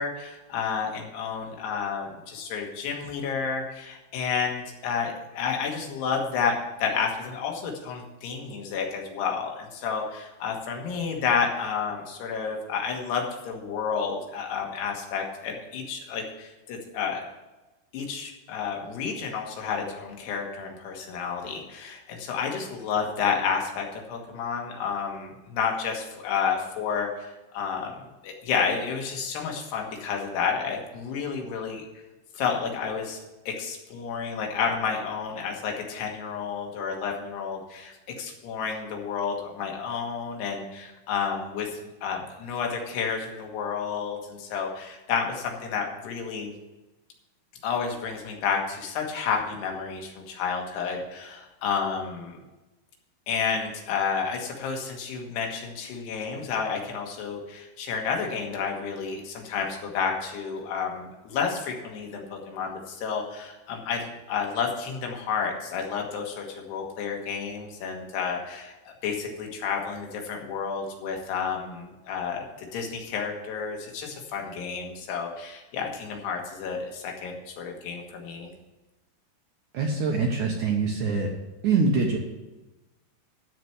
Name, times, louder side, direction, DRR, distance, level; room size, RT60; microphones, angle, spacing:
voice 1, 0.0-17.2 17.9-27.9 28.2-31.8 32.3-46.5 47.6-52.4 53.3-78.5, left 6 dB, 80° left, 1 dB, 3.6 m, -30 dB
voice 2, 79.7-81.3 81.6-82.2, right 4 dB, 70° right, 1 dB, 1.9 m, -24 dB
13.0 x 4.6 x 7.9 m, 1.1 s
omnidirectional pair, 4.6 m